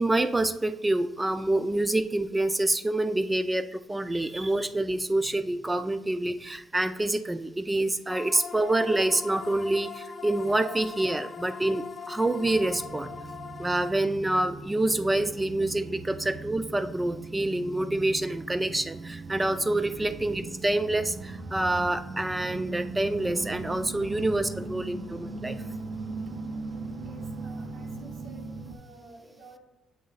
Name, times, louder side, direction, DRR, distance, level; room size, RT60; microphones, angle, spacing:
voice 1, 0.0-13.1 13.6-25.6, right 2 dB, 15° right, 11 dB, 0.4 m, -27 dB
sound 1, 8.1-13.9, left 6 dB, 50° left, 0.4 m, -41 dB
sound 2, 12.5-28.8, right 3 dB, 60° right, 0.6 m, -39 dB
voice 2, 27.0-29.6, right 2 dB, 80° right, -2 dB, 1.9 m, -52 dB
7.6 x 3.2 x 4.0 m, 1.0 s
cardioid pair, 90°, 0 cm